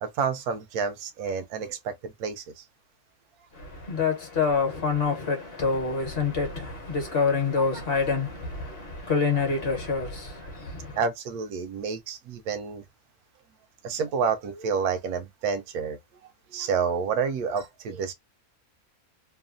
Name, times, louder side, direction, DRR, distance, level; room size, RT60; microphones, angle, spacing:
voice 1, 0.0-2.6 11.0-12.8 13.8-16.0 16.5-18.1, right 6 dB, 80° right, 1.1 m, -29 dB
voice 2, 3.5-11.0, left 5 dB, 45° left, 1.0 m, -27 dB
3.1 x 2.2 x 2.4 m
omnidirectional pair, 1.5 m